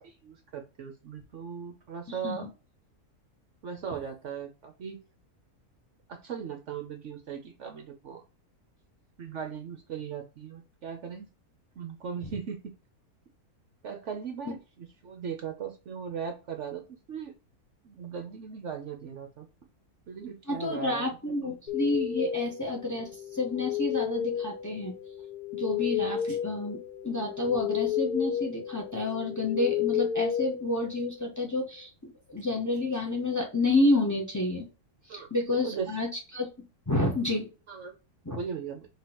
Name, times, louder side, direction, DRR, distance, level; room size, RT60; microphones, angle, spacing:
voice 1, 0.0-2.5 3.6-5.0 6.1-8.2 9.2-11.3 11.8-12.6 13.8-17.3 17.8-19.5 20.1-21.1 21.4-21.5 35.1-35.3 35.6-35.9 37.7-37.9 38.3-38.9, right 7 dB, 60° right, 5 dB, 0.9 m, -38 dB
voice 2, 2.1-2.5 14.4-14.5 20.5-24.9 25.5-34.7 35.1-36.1 36.3-36.5 36.9-37.5 38.2-38.4, left 2 dB, 15° left, -1 dB, 1.0 m, -29 dB
sound 1, 21.7-31.4, left 9 dB, 75° left, 1.3 m, -32 dB
5.9 x 3.1 x 2.9 m, 0.31 s
omnidirectional pair, 1.6 m